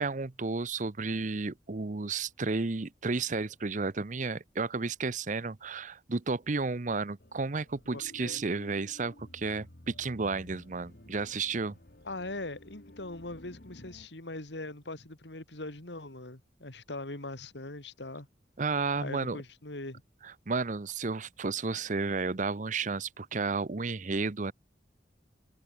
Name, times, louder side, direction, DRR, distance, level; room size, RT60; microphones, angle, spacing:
voice 1, 0.0-11.7 18.6-19.4 20.2-24.5, right 4 dB, 45° right, 0.8 m, -32 dB
sound 1, 7.2-14.1, left 1 dB, 55° left, 2.0 m, -53 dB
voice 2, 7.9-8.4 12.0-18.3 19.0-20.0, left 2 dB, 75° left, 3.0 m, -41 dB
head